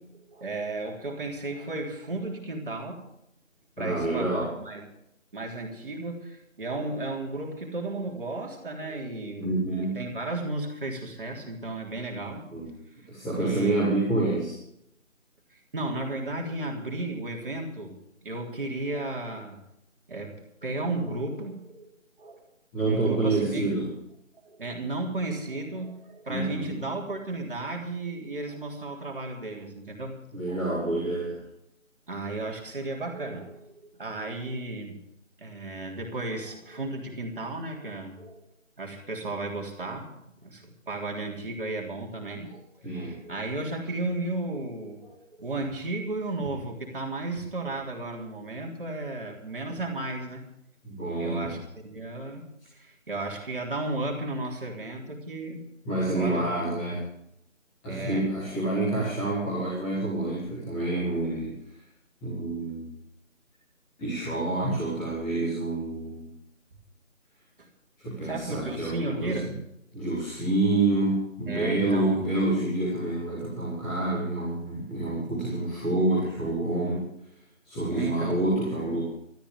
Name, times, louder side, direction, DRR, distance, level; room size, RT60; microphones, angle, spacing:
voice 1, 0.3-3.0 3.8-4.8 5.3-9.5 9.8-12.4 13.4-13.8 15.5-18.0 18.2-19.6 20.1-21.9 22.2-22.5 22.8-23.7 24.4-30.2 30.5-30.7 32.1-35.0 35.4-38.4 38.8-50.4 51.2-55.6 56.2-56.5 57.9-58.3 67.6-67.7 68.2-69.6 71.5-72.3 77.9-78.4, right 2 dB, 40° right, 0 dB, 3.5 m, -34 dB
voice 2, 3.8-4.5 9.4-10.0 12.5-12.7 13.1-14.5 22.7-23.9 26.3-26.8 30.3-31.4 42.8-43.2 50.8-51.5 55.8-57.0 57.8-61.5 62.2-62.9 64.0-66.3 68.0-69.5 69.9-77.1 77.6-79.1, right 2 dB, 5° left, -12 dB, 1.5 m, -28 dB
23.5 x 13.5 x 3.6 m, 0.77 s
figure-of-eight pair, 170°, 40 cm